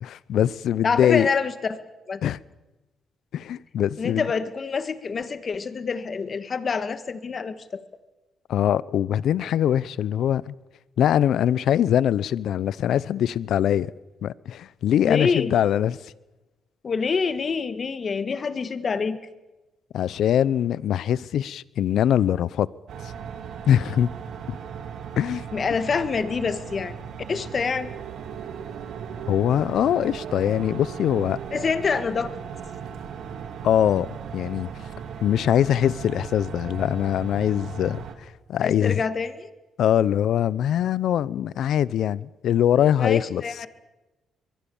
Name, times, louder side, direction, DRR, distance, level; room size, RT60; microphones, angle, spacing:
voice 1, 0.0-1.3 2.2-2.4 3.3-4.3 8.5-10.5 11.0-13.9 14.2-16.0 19.9-22.7 23.7-24.1 24.5-24.6 25.2-25.5 29.3-31.4 33.6-34.1 34.3-34.7 35.2-38.0 38.5-39.0 39.8-43.4, left 10 dB, 70° left, 0.7 m, -22 dB
voice 2, 0.8-1.8 2.1-2.2 4.0-7.8 15.0-15.5 16.8-19.2 25.5-27.0 27.3-27.9 31.5-32.3 38.6-39.5 43.0-43.7, left 5 dB, 40° left, 1.8 m, -26 dB
sound 1, 22.9-38.1, right 7 dB, 70° right, 2.8 m, -37 dB
sound 2, 27.1-35.7, right 8 dB, 90° right, 2.2 m, -43 dB
22.5 x 22.5 x 7.2 m
cardioid pair, 90°, 0 cm